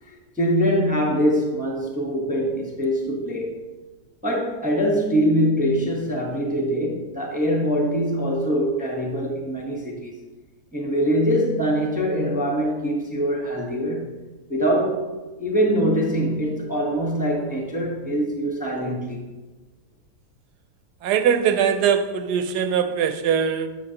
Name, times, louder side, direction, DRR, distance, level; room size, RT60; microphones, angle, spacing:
voice 1, 0.1-3.6 4.2-10.1 10.7-14.1 14.5-15.1 15.4-19.2, equal, 5° right, -1 dB, 0.9 m, -23 dB
voice 2, 21.0-23.7, right 7 dB, 85° right, 9 dB, 1.3 m, -21 dB
11.5 x 6.3 x 2.9 m, 1.2 s
omnidirectional pair, 1.7 m